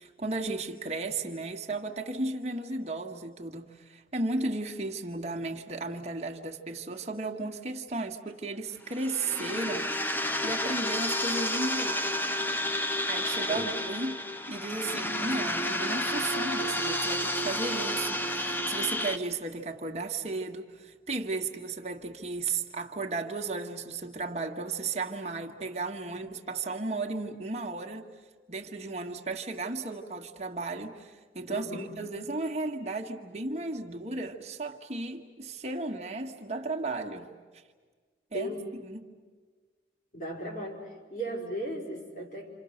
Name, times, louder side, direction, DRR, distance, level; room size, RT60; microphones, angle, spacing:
voice 1, 0.0-9.9 10.4-12.1 13.1-14.2 14.5-28.0 28.5-37.3 38.3-38.5 38.8-39.1, right 3 dB, 35° right, 2 dB, 1.7 m, -34 dB
sound 1, 8.9-19.2, left 1 dB, 10° left, 0.8 m, -31 dB
voice 2, 13.5-13.8 31.5-31.9 38.3-38.7 40.1-42.5, right 1 dB, 45° left, 0 dB, 4.9 m, -36 dB
28.5 x 28.0 x 6.6 m, 1.5 s
head